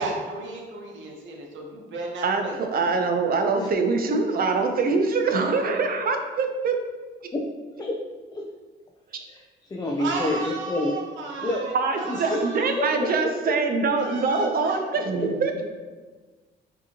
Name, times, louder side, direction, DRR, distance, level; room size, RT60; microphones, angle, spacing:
voice 1, 0.0-2.9 10.0-13.1 14.0-14.8, right 3 dB, 75° right, 0 dB, 0.9 m, -34 dB
voice 2, 2.2-6.8 11.7-15.5, right 4 dB, 50° right, 6 dB, 0.5 m, -24 dB
voice 3, 9.1-11.0 11.4-11.6 12.1-12.4 12.7-13.5, left 2 dB, 20° left, 0 dB, 0.4 m, -28 dB
4.8 x 2.8 x 2.8 m, 1.4 s
cardioid pair, 90°, 20 cm